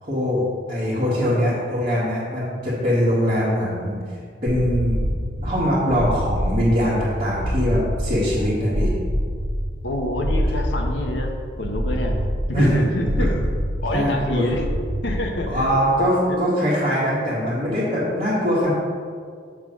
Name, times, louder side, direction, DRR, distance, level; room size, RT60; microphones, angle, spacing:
voice 1, 0.0-3.9 4.4-8.9 12.5-12.8 13.2-13.4 13.9-14.5 15.5-18.7, equal, 40° right, -12 dB, 1.9 m, -22 dB
sound 1, 4.5-15.8, equal, 90° right, 0.9 m, -26 dB
voice 2, 9.8-11.3 11.6-12.1 12.5-13.4 13.8-14.6 15.0-15.7 16.3-16.5, left 1 dB, 80° left, 2 dB, 1.0 m, -27 dB
7.4 x 3.7 x 6.1 m, 2.1 s
head